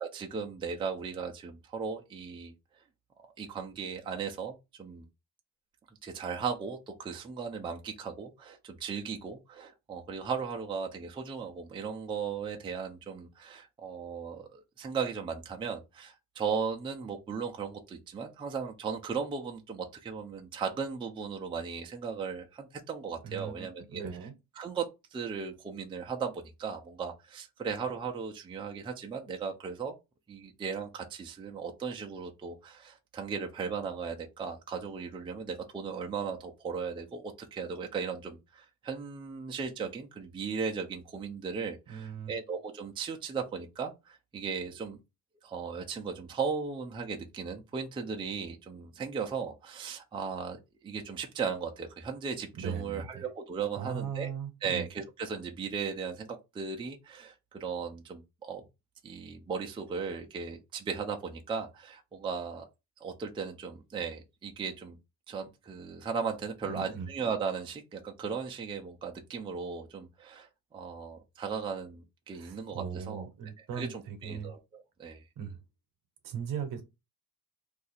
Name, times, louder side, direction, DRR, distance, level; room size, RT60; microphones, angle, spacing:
voice 1, 0.0-2.5 3.4-5.1 6.0-24.0 24.6-29.9 30.3-45.0 45.4-54.3 54.6-58.6 59.0-62.6 63.0-65.0 65.3-73.2 73.8-75.2, right 5 dB, 15° right, 0.4 m, -37 dB
voice 2, 23.2-24.3 41.9-42.4 52.6-53.3 53.8-54.9 66.6-67.1 72.3-74.5 75.4-75.6 76.2-76.8, right 7 dB, 65° right, 0.8 m, -38 dB
2.7 x 2.4 x 4.0 m
cardioid pair, 145°, 35 cm